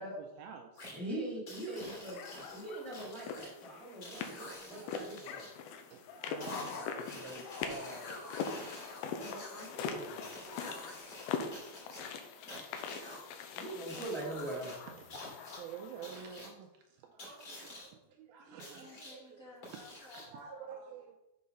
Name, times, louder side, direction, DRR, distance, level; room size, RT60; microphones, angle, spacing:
voice 1, 0.0-0.9 3.0-4.3 4.7-5.0 5.9-6.7 7.1-7.3 11.5-11.6 11.9-12.0 13.2-13.4 14.7-19.4 20.1-21.2, right 7 dB, 80° right, 3 dB, 2.2 m, -51 dB
sound 1, 0.8-1.0 1.5-3.5 4.0-5.5 6.4-9.7 10.2-11.3 11.5-13.3 13.8-14.8 15.1-15.6 16.0-16.5 17.2-17.9 18.6-19.2 19.6-20.4, left 1 dB, 30° left, 3.3 m, -48 dB
voice 2, 0.9-5.5 9.2-10.3 13.5-14.9, right 2 dB, ahead, -6 dB, 1.6 m, -42 dB
sound 2, 2.1-16.2, left 6 dB, 80° left, 2.4 m, -43 dB
voice 3, 6.3-8.2, left 1 dB, 60° left, -2 dB, 2.4 m, -46 dB
voice 4, 9.0-9.9 10.4-10.9 12.4-12.6 13.9-14.2 18.4-20.9, left 1 dB, 60° right, -7 dB, 0.8 m, -57 dB
6.4 x 5.6 x 5.4 m, 0.91 s
omnidirectional pair, 4.8 m